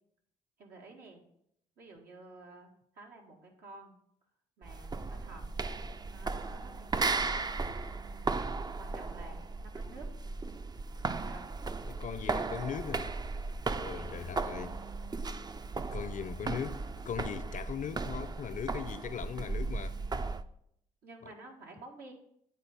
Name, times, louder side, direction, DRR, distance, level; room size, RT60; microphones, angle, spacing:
voice 1, 0.6-1.2 1.8-3.9 4.6-5.4 6.1-7.4 8.0-10.1 11.2-11.4 13.7-13.9 21.0-22.1, right 2 dB, 85° right, 1.8 m, -52 dB
sound 1, 4.6-20.5, right 3 dB, 25° right, 0.4 m, -36 dB
voice 2, 11.9-13.1 13.8-14.8 15.9-20.0, left 8 dB, 55° left, 0.6 m, -39 dB
9.6 x 3.9 x 5.5 m
cardioid pair, 65°, 16 cm